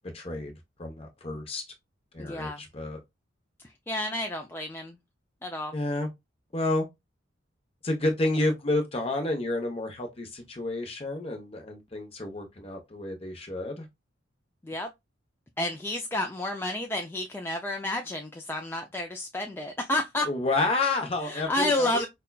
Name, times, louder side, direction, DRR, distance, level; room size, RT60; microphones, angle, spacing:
voice 1, 0.1-0.5 0.8-1.6 2.1-3.0 5.7-6.1 6.5-6.9 7.8-13.9 20.3-22.1, left 2 dB, 30° left, 0.8 m, -30 dB
voice 2, 2.2-2.6 3.6-5.0 5.4-5.7 14.6-14.9 15.6-20.3 21.2-22.1, left 1 dB, 10° left, 0.3 m, -30 dB
5.1 x 2.2 x 2.3 m
head